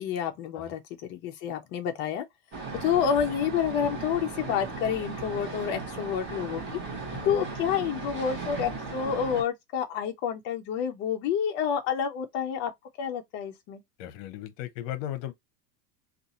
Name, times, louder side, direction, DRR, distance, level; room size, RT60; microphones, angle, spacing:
voice 1, 0.0-2.2 2.8-6.8 7.2-12.7 13.0-13.8, left 8 dB, 25° left, 0.3 m, -29 dB
sound 1, 2.5-9.4, right 4 dB, 25° right, 0.9 m, -37 dB
voice 2, 14.0-15.3, left 12 dB, 50° left, 0.8 m, -37 dB
2.6 x 2.4 x 4.0 m
supercardioid pair, 140°, 50 cm